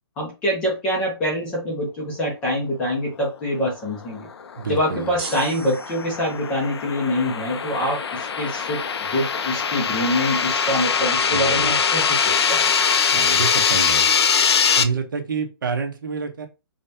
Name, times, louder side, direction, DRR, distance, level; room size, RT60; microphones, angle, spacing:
voice 1, 0.2-4.3 4.7-8.8 9.1-12.7, equal, 10° left, -3 dB, 0.5 m, -25 dB
sound 1, 4.4-14.8, left 6 dB, 80° left, 0.5 m, -22 dB
voice 2, 4.6-5.2 11.2-11.8 13.1-14.1 14.8-16.5, right 5 dB, 50° right, 4 dB, 0.8 m, -28 dB
sound 2, 5.2-6.5, right 4 dB, 20° right, 1.4 m, -37 dB
5.1 x 2.2 x 2.7 m, 0.27 s
hypercardioid pair, 175°, 13 cm